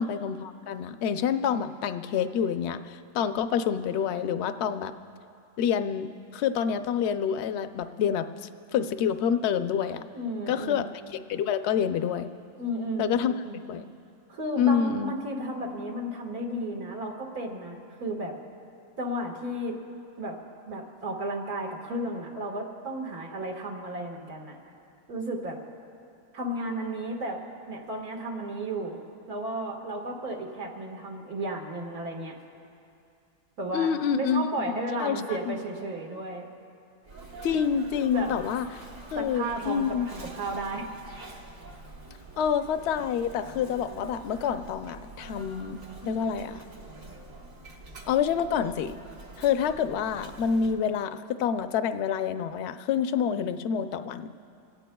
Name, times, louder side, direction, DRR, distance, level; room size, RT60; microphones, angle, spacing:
voice 1, 0.0-4.9 5.6-8.3 8.7-10.0 10.5-12.3 13.0-13.3 13.7-13.9 14.6-15.1 33.7-34.5 35.0-35.5 37.4-38.7 39.1-40.1 42.4-46.6 48.1-48.9 49.4-54.3, left 7 dB, 60° left, 10 dB, 0.7 m, -27 dB
voice 2, 10.1-10.8 12.6-13.6 14.3-18.4 19.0-19.8 20.2-20.4 20.7-24.6 25.1-25.6 26.3-29.0 29.3-32.4 33.6-36.4 38.1-38.3 39.2-40.8, right 1 dB, 85° right, 0 dB, 2.2 m, -33 dB
Sneeze, 37.0-50.8, right 2 dB, 65° right, 1.7 m, -45 dB
28.0 x 17.0 x 2.3 m, 2.6 s
omnidirectional pair, 1.6 m